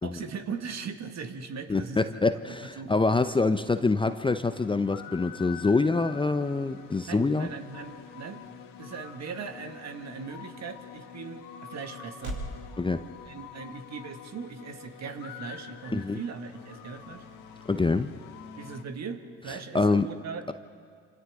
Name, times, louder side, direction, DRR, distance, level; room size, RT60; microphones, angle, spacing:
voice 1, 0.0-2.2 2.7-3.0 7.1-12.4 13.3-17.3 18.6-20.5, right 5 dB, 45° right, 7 dB, 1.9 m, -39 dB
voice 2, 1.7-7.5 12.8-13.0 15.9-16.2 17.7-18.1 19.7-20.1, left 3 dB, 15° left, 10 dB, 0.7 m, -25 dB
sound 1, 4.0-18.8, left 9 dB, 65° left, 1.5 m, -46 dB
sound 2, 6.3-12.6, right 1 dB, 80° right, 5.1 m, -46 dB
28.0 x 26.5 x 3.7 m, 2.2 s
hypercardioid pair, 55°, 36 cm